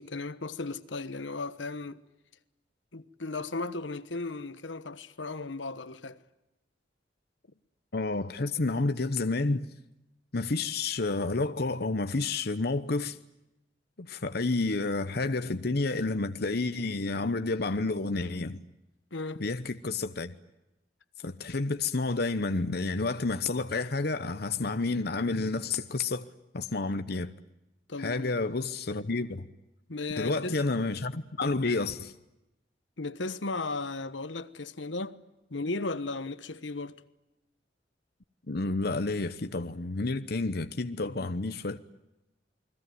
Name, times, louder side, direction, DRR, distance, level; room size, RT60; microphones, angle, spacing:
voice 1, 0.0-2.0 2.9-6.2 19.1-19.4 27.9-28.3 29.9-30.6 33.0-35.2 35.5-37.0, left 3 dB, 90° left, 1.3 m, -35 dB
voice 2, 7.9-9.7 10.3-13.2 14.0-18.6 19.4-20.3 21.2-26.3 26.5-27.4 28.0-29.5 30.2-32.1 38.5-41.8, left 3 dB, 60° left, 0.9 m, -30 dB
29.5 x 21.5 x 9.4 m
head